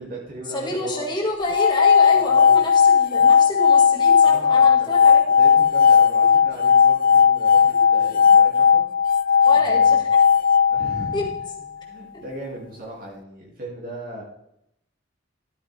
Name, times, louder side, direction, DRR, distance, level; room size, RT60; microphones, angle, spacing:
voice 1, 0.0-1.1 2.1-2.6 4.2-8.8 9.5-10.0 10.7-11.3 11.8-14.2, right 1 dB, 45° right, -4 dB, 2.9 m, -37 dB
voice 2, 0.5-5.2 9.5-10.0 11.1-11.2, left 1 dB, 20° left, -1 dB, 2.4 m, -28 dB
sound 1, 1.4-11.6, left 7 dB, 45° left, 0.4 m, -16 dB
13.0 x 9.1 x 3.6 m, 0.77 s
head